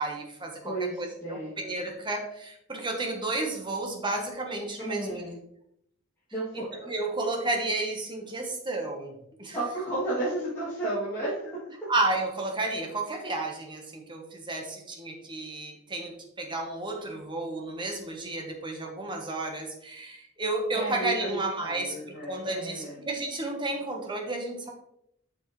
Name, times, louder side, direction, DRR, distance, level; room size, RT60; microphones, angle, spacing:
voice 1, 0.0-5.2 6.5-9.6 11.9-24.7, right 2 dB, 25° right, 2 dB, 1.2 m, -32 dB
voice 2, 0.6-1.5 4.8-5.4 6.3-6.7 9.5-11.7 20.7-23.0, right 2 dB, 15° left, -12 dB, 2.7 m, -33 dB
7.4 x 6.4 x 3.2 m, 0.75 s
head